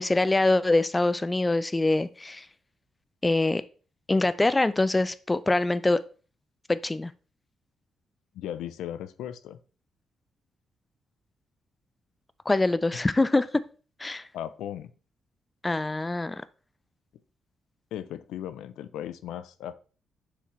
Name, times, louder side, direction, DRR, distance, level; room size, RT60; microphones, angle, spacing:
voice 1, 0.0-2.5 3.2-3.6 4.1-6.0 6.7-7.1 12.5-13.5 14.0-14.3 15.6-16.4, left 2 dB, 20° left, 15 dB, 0.5 m, -24 dB
voice 2, 8.3-9.6 14.3-14.9 17.9-19.7, left 11 dB, 85° left, 13 dB, 0.4 m, -37 dB
6.6 x 4.8 x 3.2 m, 0.38 s
supercardioid pair, 55°, 0 cm